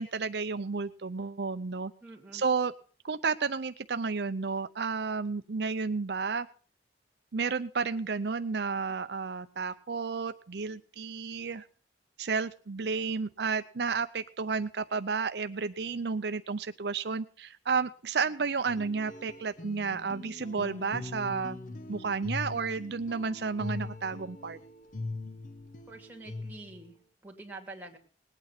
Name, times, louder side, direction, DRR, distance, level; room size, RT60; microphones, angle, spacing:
voice 1, 0.0-1.9 2.3-2.7 3.0-6.5 7.3-11.6 12.2-21.6 21.9-24.6, right 5 dB, 65° right, 10 dB, 0.6 m, -32 dB
voice 2, 2.0-2.4 25.9-28.0, right 2 dB, 10° right, 0 dB, 2.7 m, -47 dB
sound 1, 18.7-26.9, left 2 dB, 45° left, 0.9 m, -41 dB
19.5 x 9.1 x 5.8 m, 0.40 s
head